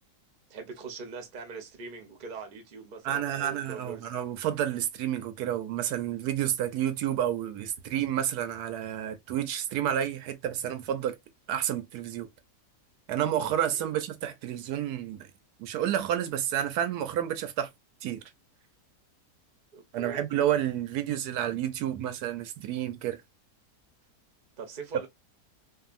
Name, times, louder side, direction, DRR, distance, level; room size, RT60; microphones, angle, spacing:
voice 1, 0.5-4.1 13.6-13.9 19.7-20.2 24.6-25.1, right 5 dB, 45° right, 0.7 m, -42 dB
voice 2, 3.0-11.2 11.5-12.3 13.1-15.2 15.6-17.7 18.0-18.2 19.9-23.2, right 10 dB, 80° right, 1.1 m, -30 dB
2.6 x 2.5 x 2.4 m
omnidirectional pair, 1.7 m